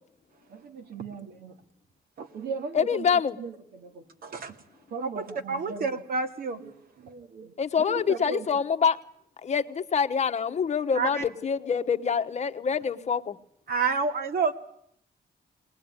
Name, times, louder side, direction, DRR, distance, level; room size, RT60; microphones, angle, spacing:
voice 1, 0.5-1.6 2.3-3.1 3.4-4.1 4.4-4.6 4.9-5.9 6.6-8.5, right 4 dB, 90° right, 7 dB, 2.2 m, -38 dB
voice 2, 2.7-3.4 7.6-9.0 9.4-13.4, left 6 dB, 45° left, 9 dB, 1.1 m, -26 dB
voice 3, 5.2-6.6 11.0-11.2 13.7-14.5, right 4 dB, 65° right, 7 dB, 2.3 m, -28 dB
21.5 x 19.5 x 9.7 m, 0.68 s
wide cardioid pair, 140°, 16 cm